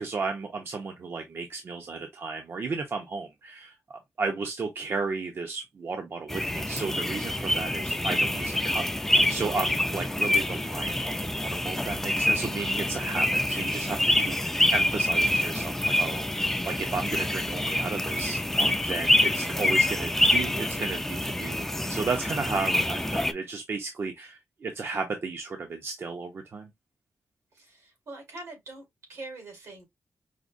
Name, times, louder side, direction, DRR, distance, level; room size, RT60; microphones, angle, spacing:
voice 1, 0.0-3.7 4.2-18.4 18.8-26.7, right 4 dB, 55° right, 0.6 m, -34 dB
sound 1, 6.3-23.3, left 1 dB, 5° left, 0.3 m, -26 dB
voice 2, 27.5-29.8, right 2 dB, 85° right, 2.0 m, -43 dB
4.9 x 2.1 x 2.5 m
wide cardioid pair, 100°, 5 cm